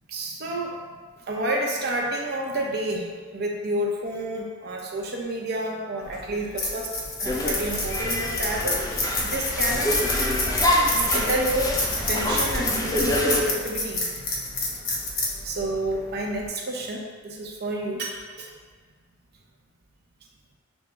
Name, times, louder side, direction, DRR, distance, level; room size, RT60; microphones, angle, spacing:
voice 1, 0.1-0.8 1.2-6.9 7.2-9.9 10.9-14.0 15.4-18.5, right 1 dB, 50° right, 0 dB, 0.7 m, -29 dB
sound 1, 6.0-16.5, left 2 dB, 45° left, 0.8 m, -29 dB
sound 2, 7.2-13.4, left 1 dB, 15° left, 0.4 m, -26 dB
6.1 x 2.1 x 3.4 m, 1.5 s
head